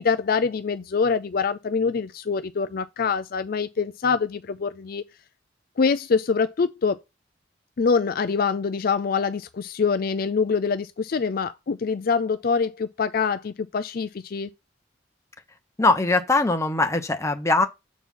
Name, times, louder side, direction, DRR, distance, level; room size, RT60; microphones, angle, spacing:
voice 1, 0.0-5.0 5.8-7.0 7.8-14.5, left 5 dB, 50° left, 0.4 m, -25 dB
voice 2, 15.8-17.7, left 3 dB, 15° left, 0.9 m, -21 dB
7.3 x 4.3 x 5.5 m
head